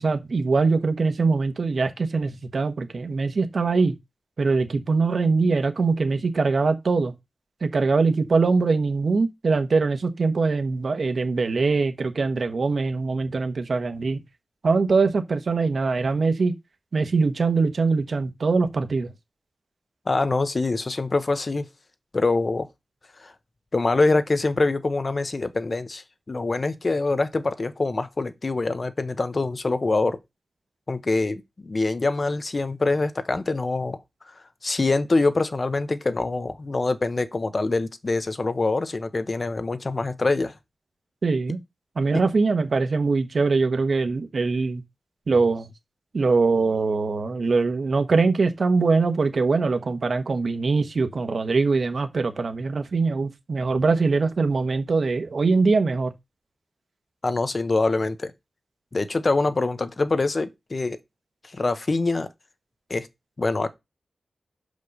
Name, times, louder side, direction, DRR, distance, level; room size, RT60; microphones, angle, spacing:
voice 1, 0.0-3.9 4.4-7.1 7.6-14.2 14.6-16.5 16.9-19.1 41.2-41.6 42.0-44.8 45.3-45.7 46.1-56.1, right 4 dB, 65° right, 1.2 m, -22 dB
voice 2, 20.1-21.7 22.1-22.7 23.2-23.3 23.7-30.2 30.9-34.0 34.6-40.5 57.2-58.3 58.9-61.0 61.5-62.3 62.9-63.1 63.4-63.8, left 3 dB, 40° left, 0.9 m, -24 dB
5.6 x 5.1 x 6.5 m
wide cardioid pair, 90°, 0 cm